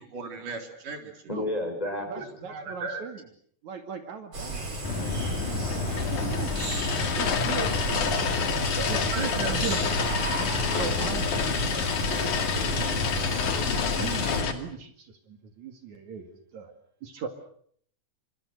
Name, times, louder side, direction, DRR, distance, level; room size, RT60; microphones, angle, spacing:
voice 1, 0.0-1.1 2.4-3.0 8.8-9.6, right 4 dB, 85° right, 5 dB, 5.4 m, -36 dB
voice 2, 1.3-2.2, left 1 dB, 10° left, 4 dB, 6.9 m, -31 dB
voice 3, 2.0-3.2 3.6-6.6 7.1-8.2 8.8-9.8 10.6-16.7 17.0-17.3, right 7 dB, 65° right, 6 dB, 3.6 m, -39 dB
sound 1, 4.3-14.4, right 2 dB, 50° right, 8.4 m, -33 dB
sound 2, 4.8-14.5, left 6 dB, 75° left, 3.9 m, -28 dB
30.0 x 26.0 x 6.7 m, 0.63 s
omnidirectional pair, 3.6 m